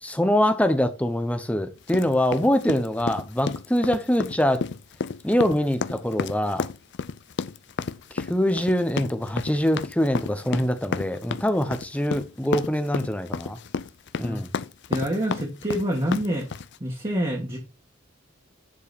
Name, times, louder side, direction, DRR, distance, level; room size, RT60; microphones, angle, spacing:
voice 1, 0.0-4.6 5.2-6.7 8.1-13.6 14.2-14.5, equal, 5° left, 0.9 m, -24 dB
sound 1, 1.9-16.8, left 5 dB, 55° left, 0.5 m, -31 dB
voice 2, 14.9-16.5 16.8-17.6, equal, 25° right, 2.0 m, -26 dB
10.5 x 4.6 x 4.3 m
head